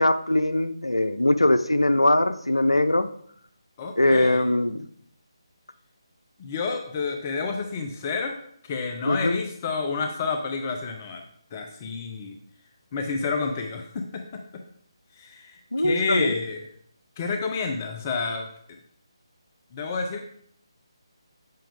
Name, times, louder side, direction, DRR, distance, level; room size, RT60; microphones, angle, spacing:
voice 1, 0.0-3.1 4.0-4.8 9.1-9.4 15.7-16.3, left 1 dB, 85° left, 12 dB, 0.6 m, -21 dB
voice 2, 3.8-4.5 6.4-8.4 8.6-11.2 11.5-12.4 12.9-14.4 15.1-16.7 17.2-18.5 19.7-20.2, left 4 dB, 25° left, 4 dB, 0.8 m, -29 dB
8.7 x 7.7 x 3.6 m, 0.65 s
figure-of-eight pair, 150°, 3 cm